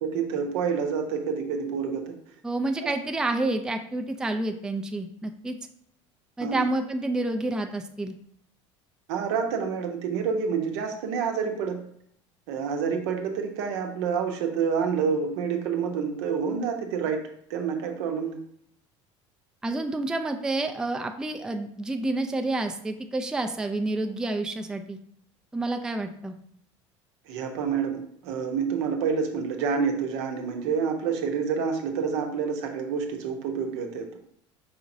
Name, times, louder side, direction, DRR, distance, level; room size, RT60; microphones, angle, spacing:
voice 1, 0.0-2.2 2.8-2.9 6.4-6.6 9.1-11.9 12.5-18.4 27.3-34.1, right 6 dB, 70° right, 4 dB, 0.7 m, -28 dB
voice 2, 2.4-5.6 6.4-8.1 19.6-25.0 25.5-26.3, right 2 dB, 5° right, 5 dB, 0.3 m, -29 dB
4.9 x 2.9 x 2.6 m, 0.67 s
hypercardioid pair, 75°, 15 cm